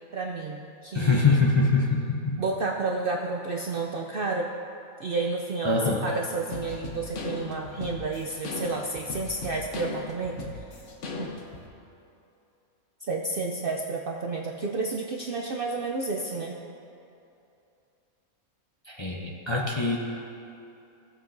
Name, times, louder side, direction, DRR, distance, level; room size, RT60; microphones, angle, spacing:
voice 1, 0.1-1.5 2.4-4.5 5.0-10.6 11.2-11.3 13.0-16.6, right 3 dB, 60° right, 1 dB, 0.6 m, -31 dB
voice 2, 0.9-2.4 5.6-6.1 18.9-20.0, left 3 dB, 30° left, -3 dB, 0.6 m, -24 dB
sound 1, 6.5-11.7, left 3 dB, 60° left, 1.2 m, -37 dB
16.5 x 7.5 x 2.6 m, 2.8 s
omnidirectional pair, 1.5 m